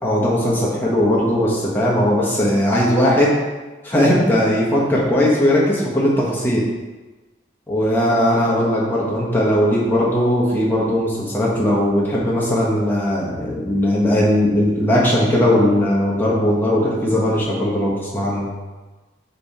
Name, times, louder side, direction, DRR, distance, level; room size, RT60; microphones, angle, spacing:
voice 1, 0.0-3.4 3.8-6.6 7.7-18.5, left 1 dB, 10° left, -6 dB, 1.3 m, -18 dB
5.6 x 4.2 x 4.2 m, 1.2 s
head